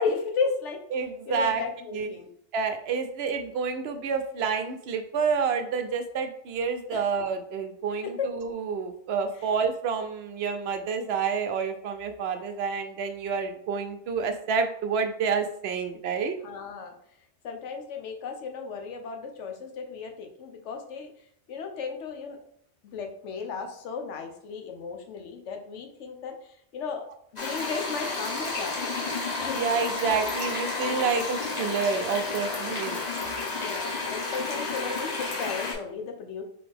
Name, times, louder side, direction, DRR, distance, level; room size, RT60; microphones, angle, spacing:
voice 1, 0.0-0.8 1.3-2.3 6.9-7.0 8.0-8.3 16.4-16.9 17.4-21.1 21.5-22.4 22.8-26.3 26.7-27.1 27.3-28.9 29.4-29.6 33.5-36.4, left 5 dB, 85° left, 4 dB, 1.1 m, -34 dB
voice 2, 0.9-1.6 1.9-2.1 2.5-16.3 29.5-33.0, right 5 dB, 70° right, 7 dB, 0.8 m, -29 dB
sound 1, 27.4-35.7, left 3 dB, 35° left, 1.2 m, -31 dB
3.8 x 3.8 x 3.4 m, 0.66 s
omnidirectional pair, 1.2 m